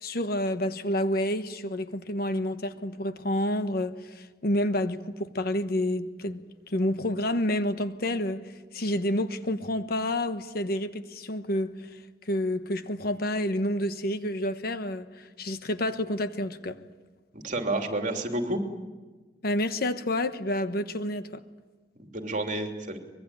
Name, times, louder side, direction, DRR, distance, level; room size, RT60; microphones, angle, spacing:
voice 1, 0.0-12.0 12.3-16.8 19.4-21.4, left 1 dB, 60° left, 1.2 m, -29 dB
voice 2, 17.3-18.6 21.9-23.0, right 2 dB, 45° right, 3.0 m, -30 dB
24.5 x 22.0 x 9.1 m
head